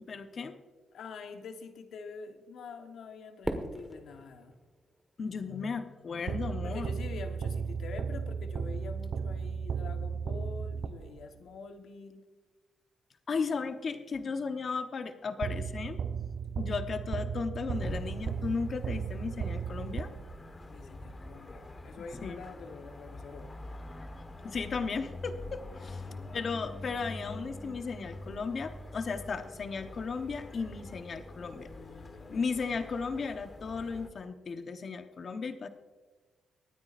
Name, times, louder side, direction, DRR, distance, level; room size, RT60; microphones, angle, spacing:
voice 1, 0.1-0.6 5.2-6.9 13.3-16.0 16.6-20.1 22.2-22.4 24.4-31.7 32.3-35.7, left 5 dB, 50° left, 8 dB, 1.0 m, -35 dB
voice 2, 0.9-4.6 6.6-12.3 20.7-23.5 26.1-26.5 31.7-32.9, left 4 dB, 75° left, 6 dB, 1.2 m, -46 dB
Fireworks, 3.4-5.8, right 1 dB, 5° right, 1.5 m, -40 dB
sound 1, 6.3-11.4 15.4-20.6, right 6 dB, 65° right, 0.4 m, -35 dB
sound 2, 17.7-34.1, left 2 dB, 30° left, 1.3 m, -45 dB
24.0 x 9.6 x 2.5 m, 1.3 s
cardioid pair, 80°, 0 cm